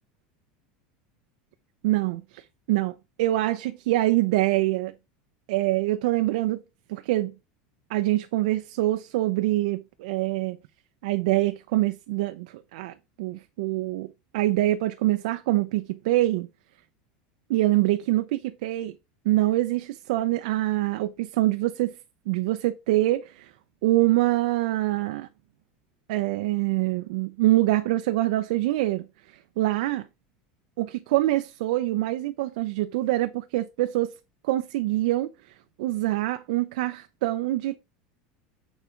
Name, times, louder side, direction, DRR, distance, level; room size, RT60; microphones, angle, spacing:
voice 1, 1.8-2.4 2.7-4.9 5.5-6.6 6.9-7.3 7.9-10.6 11.0-14.1 14.3-16.5 17.5-18.9 19.2-21.9 22.3-23.5 23.8-25.3 26.1-29.1 29.6-30.1 30.8-34.1 34.4-35.3 35.8-37.8, right 16 dB, 75° right, 0.9 m, -25 dB
9.3 x 5.3 x 4.7 m
supercardioid pair, 145°, 4 cm